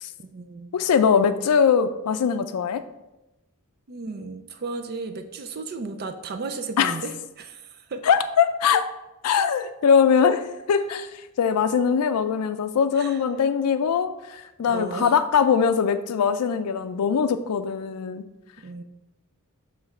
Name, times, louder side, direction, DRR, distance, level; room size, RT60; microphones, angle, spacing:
voice 1, 0.2-0.8 3.9-8.0 13.0-13.2 14.7-15.1 18.6-18.8, right 4 dB, 45° right, 7 dB, 0.5 m, -34 dB
voice 2, 0.7-2.8 6.8-7.0 8.0-8.9 9.2-18.2, left 6 dB, 85° left, 10 dB, 0.4 m, -22 dB
7.0 x 3.2 x 5.4 m, 0.99 s
head